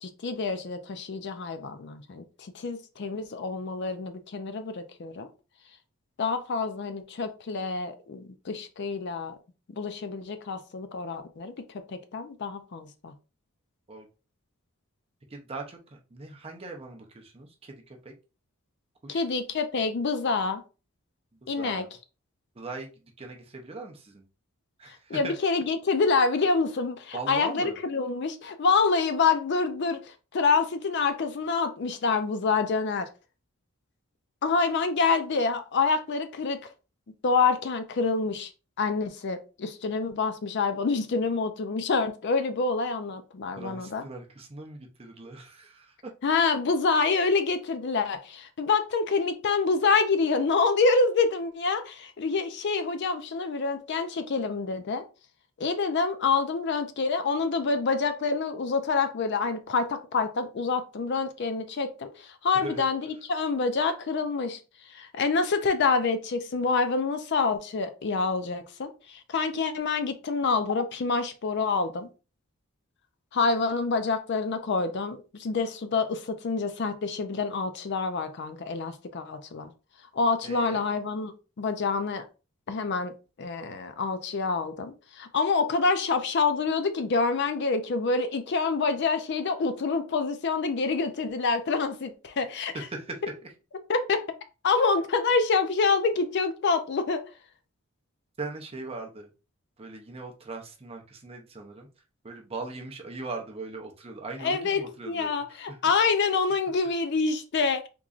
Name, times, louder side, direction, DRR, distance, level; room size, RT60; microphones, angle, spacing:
voice 1, 0.0-5.3 6.2-9.4 9.7-11.5 11.9-13.1 19.1-20.6 21.5-21.8 25.1-33.1 34.4-36.6 37.2-38.5 38.8-44.0 46.2-55.0 55.6-64.6 64.9-72.1 73.3-79.7 80.1-81.3 81.6-82.2 82.7-83.1 83.4-92.8 93.9-94.2 94.6-97.2 104.4-104.8 105.1-107.9, left 4 dB, 50° left, 0.4 m, -27 dB
voice 2, 15.3-18.1 19.0-19.2 21.3-22.0 22.5-24.3 24.8-25.3 27.1-27.8 43.6-46.1 62.5-62.8 80.4-80.8 92.7-93.5 94.8-94.9 98.4-99.3 99.8-101.9 102.2-105.8, right 3 dB, 25° right, 0.6 m, -40 dB
3.7 x 3.0 x 2.4 m
head